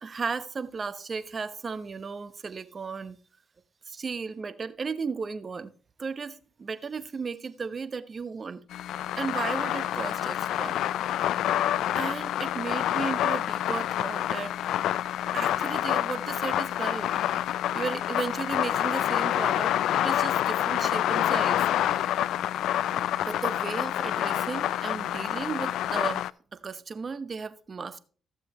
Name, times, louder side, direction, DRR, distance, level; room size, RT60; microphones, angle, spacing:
voice 1, 0.0-3.2 3.9-5.7 6.0-8.6 9.2-10.8 11.9-14.6 15.3-17.2 17.7-19.7 20.0-22.1 23.2-28.0, right 5 dB, 40° right, 0.9 m, -35 dB
sound 1, 8.7-26.3, left 12 dB, 80° left, 0.3 m, -27 dB
15.5 x 7.1 x 3.0 m
cardioid pair, 90°, 0 cm